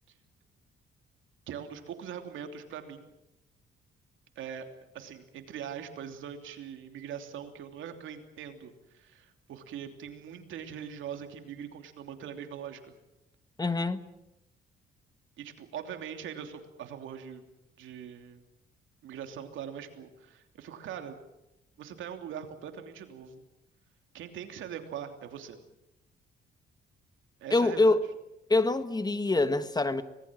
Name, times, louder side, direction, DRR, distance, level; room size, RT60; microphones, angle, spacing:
voice 1, 1.5-3.1 4.4-4.6 4.9-12.9 15.4-17.4 17.8-18.4 19.0-21.2 21.8-23.4 24.1-25.6 27.4-28.0, right 8 dB, 80° right, 3.0 m, -42 dB
voice 2, 13.6-14.1 27.5-28.0 28.5-30.0, left 2 dB, 20° left, 1.4 m, -25 dB
25.5 x 20.0 x 7.6 m
cardioid pair, 90°, 20 cm